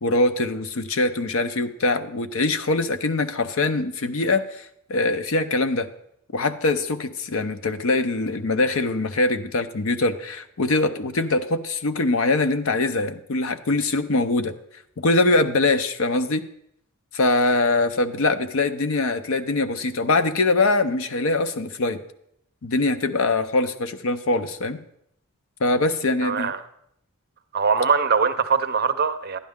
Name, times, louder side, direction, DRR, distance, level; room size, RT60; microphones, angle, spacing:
voice 1, 0.0-5.9 6.3-14.5 15.0-16.5 17.1-22.0 22.6-24.8 25.6-26.5, left 2 dB, 70° left, 0.6 m, -23 dB
voice 2, 26.2-26.6 27.5-29.4, right 5 dB, 45° right, 0.6 m, -22 dB
11.5 x 10.5 x 3.6 m
head